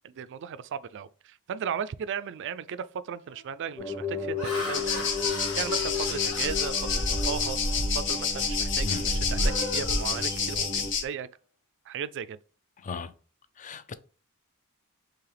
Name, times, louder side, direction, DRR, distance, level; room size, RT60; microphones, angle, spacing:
voice 1, 0.0-4.9 5.6-7.6 7.9-11.3 11.9-12.4, right 7 dB, 55° right, 0.3 m, -36 dB
Laughter, 2.3-2.5 3.1-3.4 4.0-7.8 8.3-8.5 8.9-10.8, left 2 dB, 80° left, 1.6 m, -40 dB
sound 1, 3.8-10.9, left 3 dB, 20° left, 0.9 m, -35 dB
sound 2, 4.7-11.0, left 4 dB, 55° left, 0.9 m, -28 dB
voice 2, 13.6-13.9, left 4 dB, 35° left, 0.5 m, -35 dB
4.7 x 3.2 x 3.3 m
head